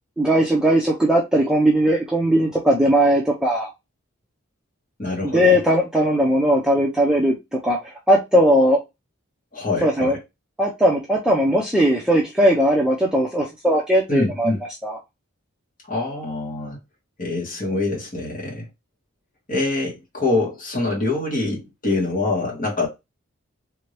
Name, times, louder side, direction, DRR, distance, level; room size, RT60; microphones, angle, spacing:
voice 1, 0.2-3.7 5.2-8.8 9.8-10.2 10.6-14.5 14.8-15.0, equal, 5° right, 0.5 m, -18 dB
voice 2, 5.0-5.6 9.5-10.1 14.1-14.6 15.9-16.8 17.2-18.6 19.5-22.9, left 2 dB, 40° left, 1.8 m, -25 dB
3.4 x 2.8 x 3.2 m
head